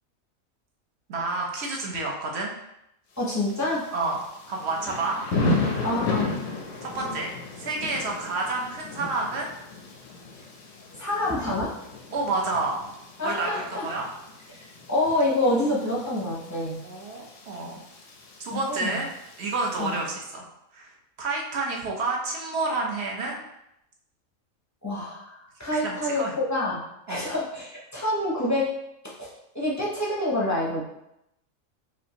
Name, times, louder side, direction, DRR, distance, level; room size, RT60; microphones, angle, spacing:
voice 1, 1.1-2.5 3.9-5.2 6.8-7.3 7.6-9.5 12.1-12.8 13.2-14.1 16.8-17.8 18.4-19.1 19.4-20.4 20.7-20.9 21.2-23.4 25.8-26.3 27.1-27.2, right 3 dB, 55° right, 0 dB, 0.9 m, -29 dB
Thunder / Rain, 3.2-20.0, left 3 dB, 70° left, 1.1 m, -34 dB
voice 2, 3.2-3.8 5.8-6.3 11.0-11.7 13.2-13.8 14.5-16.8 18.5-19.0 19.8-20.0 24.8-26.8 27.1-28.7 29.0-30.9, left 1 dB, 15° left, -6 dB, 0.7 m, -27 dB
5.1 x 2.5 x 2.9 m, 0.84 s
omnidirectional pair, 1.4 m